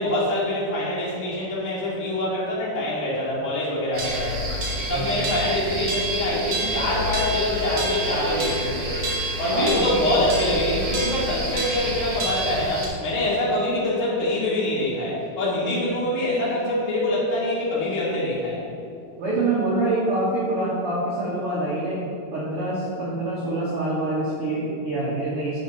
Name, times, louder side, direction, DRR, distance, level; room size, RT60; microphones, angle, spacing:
voice 1, 0.0-4.6 4.9-9.1 9.4-18.6, left 1 dB, 75° left, -7 dB, 0.7 m, -25 dB
sound 1, 3.9-12.9, right 1 dB, 65° right, 1.2 m, -28 dB
voice 2, 9.5-9.8 19.2-22.0 22.3-25.6, right 2 dB, 85° right, -8 dB, 1.2 m, -25 dB
6.9 x 5.6 x 5.4 m, 2.7 s
omnidirectional pair, 4.5 m